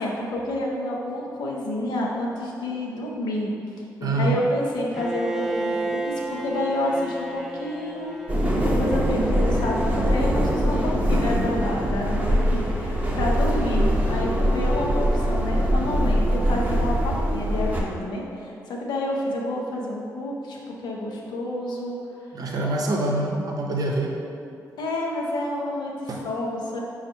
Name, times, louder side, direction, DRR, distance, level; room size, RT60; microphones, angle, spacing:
voice 1, 0.0-3.5 4.0-8.1 8.4-20.6 20.8-22.0 24.8-26.8, left 1 dB, 70° left, -2 dB, 0.7 m, -29 dB
voice 2, 4.0-4.4 22.3-24.1 26.1-26.2, right 2 dB, 55° right, 0 dB, 0.6 m, -25 dB
Bowed string instrument, 4.9-10.9, right 2 dB, 5° right, 0.5 m, -32 dB
sound 1, 8.3-17.8, equal, 20° right, 0.8 m, -22 dB
4.2 x 2.4 x 4.2 m, 2.5 s
supercardioid pair, 45°, 7 cm